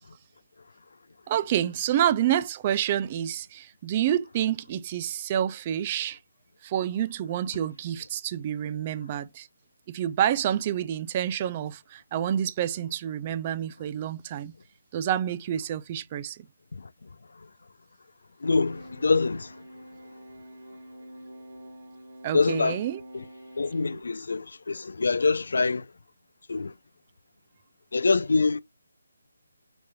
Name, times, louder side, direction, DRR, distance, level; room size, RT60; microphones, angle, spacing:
voice 1, 1.3-6.2 6.6-9.5 9.9-14.5 14.9-16.5 22.2-23.0, right 10 dB, 30° right, 0.4 m, -28 dB
voice 2, 18.4-19.5 22.3-22.8 23.1-23.2 23.6-25.9 26.5-26.7 27.9-28.6, left 4 dB, 70° left, 0.3 m, -25 dB
sound 1, 18.4-24.0, equal, 60° right, 1.8 m, -46 dB
5.1 x 2.8 x 2.3 m
figure-of-eight pair, 160°, 0 cm